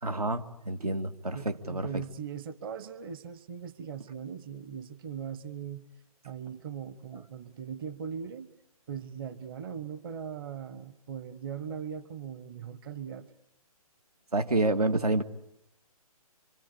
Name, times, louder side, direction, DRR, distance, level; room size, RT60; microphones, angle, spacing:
voice 1, 0.0-1.9 14.3-15.2, right 2 dB, 80° right, 8 dB, 2.0 m, -28 dB
voice 2, 1.3-5.9 6.2-8.5 8.9-13.3, right 7 dB, 40° right, 13 dB, 1.2 m, -40 dB
26.5 x 26.0 x 8.6 m, 0.75 s
figure-of-eight pair, 145°, 19 cm